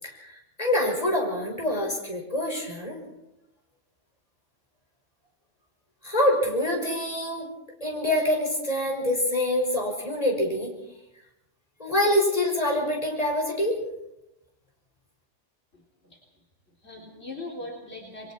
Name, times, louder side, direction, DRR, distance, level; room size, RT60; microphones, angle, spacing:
voice 1, 0.0-3.0 6.0-7.5 7.8-10.7 11.8-13.8, left 1 dB, 30° left, 0 dB, 5.8 m, -25 dB
voice 2, 15.7-16.2 16.8-18.3, left 2 dB, 60° left, -1 dB, 3.8 m, -40 dB
29.5 x 22.5 x 4.5 m, 0.89 s
omnidirectional pair, 1.2 m